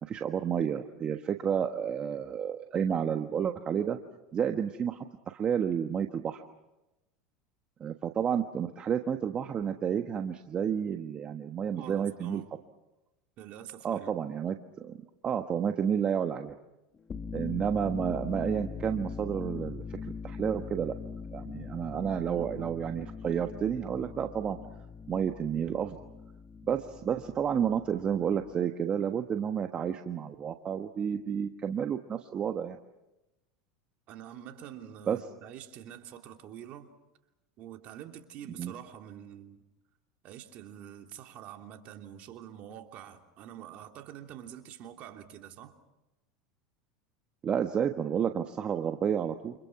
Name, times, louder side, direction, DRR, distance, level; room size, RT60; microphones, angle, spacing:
voice 1, 0.0-4.0 4.3-6.4 7.8-12.4 13.8-16.6 17.3-20.9 21.3-24.6 25.1-26.0 26.7-32.8 35.1-35.2 38.6-38.7 47.4-49.5, right 8 dB, 35° right, 1.4 m, -31 dB
voice 2, 11.8-12.6 13.4-14.1 34.1-36.9 37.6-39.6 40.2-45.7, right 10 dB, 50° right, 3.0 m, -46 dB
sound 1, 17.0-28.5, left 5 dB, 30° left, 1.7 m, -41 dB
29.5 x 27.5 x 5.9 m
hypercardioid pair, 95°, 3 cm